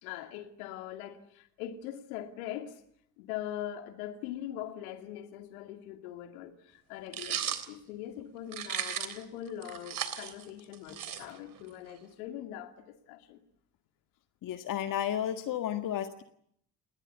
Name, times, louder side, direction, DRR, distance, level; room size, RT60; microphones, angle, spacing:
voice 1, 0.0-2.8 3.2-13.4, left 11 dB, 65° left, 2.6 m, -42 dB
sound 1, 7.1-7.7 8.5-9.2 9.6-11.6, right 9 dB, 45° right, 3.3 m, -36 dB
voice 2, 14.4-16.2, left 10 dB, 45° left, 1.7 m, -32 dB
29.0 x 21.0 x 8.3 m
figure-of-eight pair, 55°, 47 cm